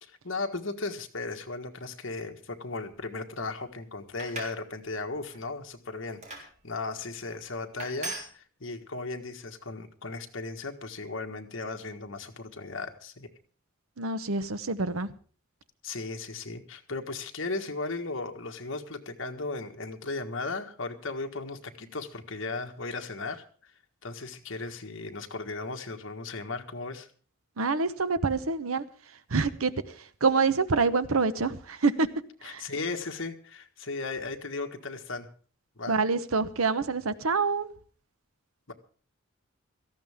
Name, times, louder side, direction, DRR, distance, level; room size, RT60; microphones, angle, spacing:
voice 1, 0.0-13.3 15.8-23.7 24.0-27.1 32.4-35.3 35.8-36.0 38.7-38.8, left 3 dB, 65° left, 5 dB, 1.6 m, -36 dB
sound 1, 4.0-4.6 5.1-5.4 6.2-6.5 7.2-7.4 7.8-8.3, right 2 dB, 35° right, 3.8 m, -38 dB
voice 2, 14.0-15.1 27.6-28.8 29.3-29.9 30.2-32.1 32.4-32.6 35.9-37.7, right 4 dB, 85° right, 13 dB, 0.9 m, -26 dB
18.0 x 14.0 x 3.6 m, 0.42 s
head